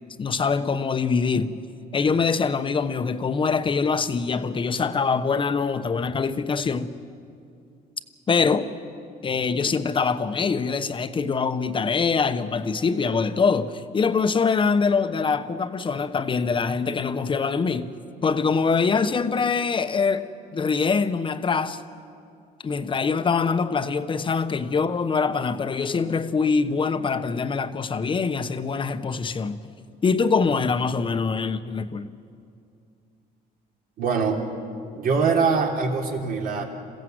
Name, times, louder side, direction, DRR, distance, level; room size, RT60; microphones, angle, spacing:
voice 1, 0.2-1.5 1.9-6.9 8.3-8.7 9.2-17.9 18.2-21.8 22.6-29.6 30.0-32.1, left 5 dB, 30° left, 1.0 m, -24 dB
voice 2, 34.0-34.4 34.9-36.6, right 5 dB, 60° right, 3.3 m, -23 dB
27.5 x 16.0 x 8.0 m
cardioid pair, 110°, 17 cm